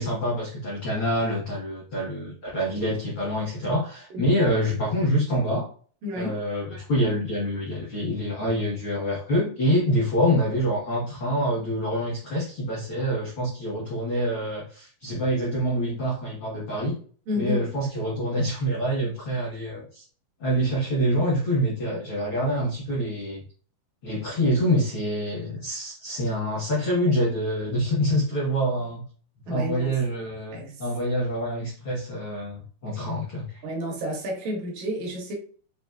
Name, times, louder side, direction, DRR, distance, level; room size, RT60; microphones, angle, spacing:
voice 1, 0.0-5.7 6.1-16.9 17.4-20.0 20.4-23.4 24.0-29.0 29.5-33.6, equal, 75° left, 1.2 m, -26 dB
voice 2, 6.0-6.4 17.3-17.7 29.5-29.9 30.5-30.8 33.6-35.3, left 1 dB, 70° right, 2.3 m, -31 dB
6.4 x 2.8 x 2.4 m
omnidirectional pair, 4.6 m